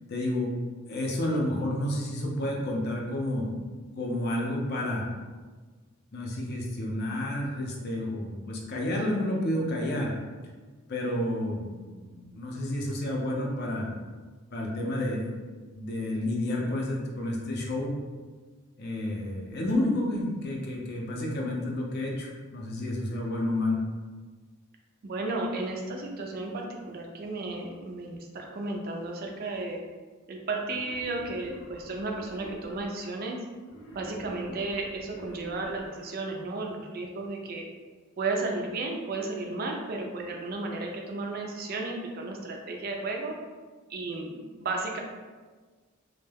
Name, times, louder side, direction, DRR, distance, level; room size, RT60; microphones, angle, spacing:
voice 1, 0.1-0.5 0.9-3.5 4.0-5.1 6.1-10.1 10.9-13.9 14.5-15.3 15.7-18.0 18.8-23.8, left 1 dB, 50° left, -1 dB, 0.5 m, -30 dB
voice 2, 25.0-29.8 30.3-33.4 33.9-37.6 38.2-43.4 43.9-45.0, right 2 dB, 45° right, 1 dB, 0.3 m, -33 dB
Wild animals, 30.6-33.1 33.6-36.1, equal, 80° left, 0.8 m, -47 dB
2.2 x 2.1 x 3.3 m, 1.4 s
head